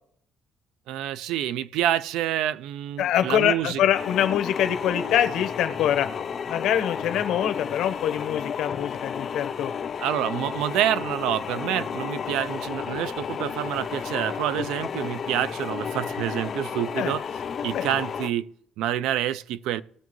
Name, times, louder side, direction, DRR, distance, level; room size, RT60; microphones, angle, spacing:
voice 1, 0.9-3.8 10.0-17.2 17.6-19.8, right 12 dB, 80° right, 0.5 m, -27 dB
voice 2, 3.0-6.1 6.5-9.7 17.0-17.1 17.7-17.8, left 10 dB, 65° left, 1.0 m, -24 dB
sound 1, 3.9-18.3, left 7 dB, 35° left, 0.5 m, -32 dB
19.5 x 7.0 x 3.1 m
cardioid pair, 160°, 0 cm